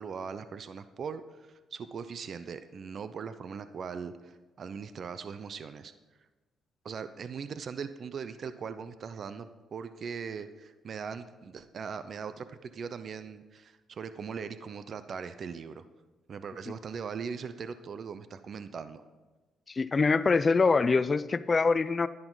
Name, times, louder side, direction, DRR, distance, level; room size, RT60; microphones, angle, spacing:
voice 1, 0.0-5.9 6.8-15.8 16.3-19.0, right 6 dB, 50° right, 12 dB, 0.6 m, -40 dB
voice 2, 19.7-22.1, left 4 dB, 35° left, 15 dB, 0.5 m, -24 dB
11.0 x 10.5 x 3.9 m, 1.2 s
cardioid pair, 90°, 0 cm